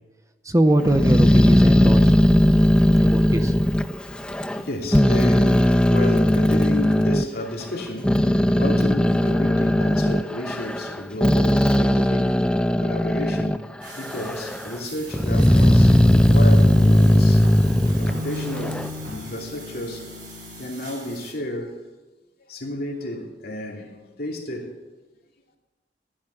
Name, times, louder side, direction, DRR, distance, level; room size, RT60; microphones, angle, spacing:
voice 1, 0.4-2.2 3.0-3.5, right 1 dB, 20° right, 0.7 m, -22 dB
Growling, 0.8-4.6 4.9-7.2 7.8-13.6 14.0-14.7 15.1-18.9, left 1 dB, 5° left, 0.3 m, -18 dB
voice 2, 4.0-17.6 18.0-20.3 20.6-22.0 22.4-24.7, left 1 dB, 55° left, 2.8 m, -32 dB
sound 1, 13.8-21.3, right 4 dB, 50° right, 4.9 m, -44 dB
sound 2, 15.5-20.6, left 2 dB, 85° right, 3.2 m, -35 dB
14.5 x 10.5 x 7.0 m
head